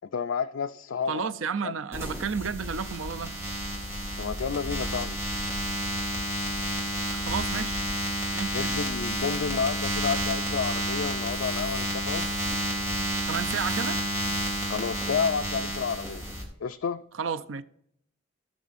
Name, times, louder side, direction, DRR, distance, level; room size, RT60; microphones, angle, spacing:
voice 1, 0.0-1.2 1.6-1.7 4.2-5.2 8.5-12.3 14.7-16.2 16.6-17.1, left 6 dB, 80° left, 0.4 m, -30 dB
voice 2, 1.1-3.3 7.1-7.8 8.3-8.8 13.3-14.0 17.1-17.6, right 6 dB, 80° right, 0.6 m, -32 dB
sound 1, 1.9-16.4, right 1 dB, 15° right, 2.3 m, -30 dB
18.0 x 6.1 x 2.6 m
head